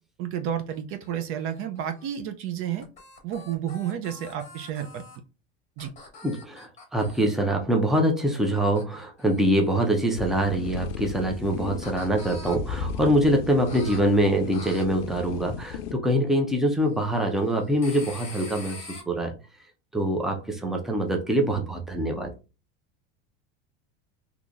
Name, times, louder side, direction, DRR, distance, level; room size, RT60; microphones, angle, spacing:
voice 1, 0.2-2.9 3.2-5.0 5.8-5.9, right 9 dB, 45° right, 0.5 m, -31 dB
sound 1, 0.7-2.1 2.6-5.2 5.8-7.4 8.8-10.5 11.2-12.5 13.7-14.0 14.5-14.8 17.8-19.0, left 3 dB, 25° left, 1.3 m, -45 dB
voice 2, 6.2-18.8 19.1-19.3 19.9-22.3, right 1 dB, ahead, 0.6 m, -24 dB
sound 2, 10.2-15.9, left 6 dB, 85° left, 0.5 m, -35 dB
3.8 x 2.9 x 2.5 m
supercardioid pair, 135°, 29 cm